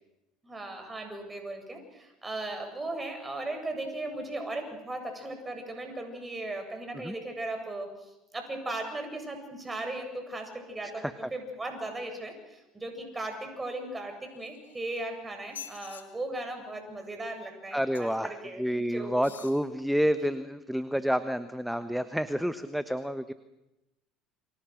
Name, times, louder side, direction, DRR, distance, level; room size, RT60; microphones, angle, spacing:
voice 1, 0.4-19.2, right 2 dB, 20° right, 5 dB, 8.0 m, -37 dB
sound 1, 14.3-15.0 15.4-16.0 17.9-18.3 19.1-19.6 20.2-20.3, left 8 dB, 90° left, 2.1 m, -46 dB
voice 2, 17.7-23.3, equal, ahead, 12 dB, 1.3 m, -29 dB
29.0 x 25.0 x 6.5 m, 0.95 s
hypercardioid pair, 70°, 0 cm